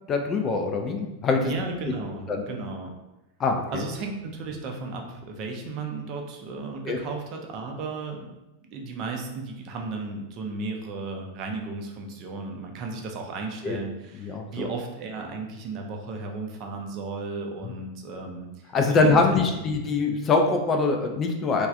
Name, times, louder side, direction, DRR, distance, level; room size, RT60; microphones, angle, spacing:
voice 1, 0.1-1.5 2.3-2.4 3.4-3.6 6.9-7.0 13.6-13.8 14.2-14.7 18.7-21.7, left 3 dB, 25° left, 4 dB, 0.3 m, -23 dB
voice 2, 1.4-2.9 3.7-8.3 8.6-18.5 18.9-19.7, right 3 dB, 40° right, 3 dB, 0.4 m, -34 dB
3.1 x 2.3 x 2.4 m, 1.0 s
figure-of-eight pair, 90°, 0 cm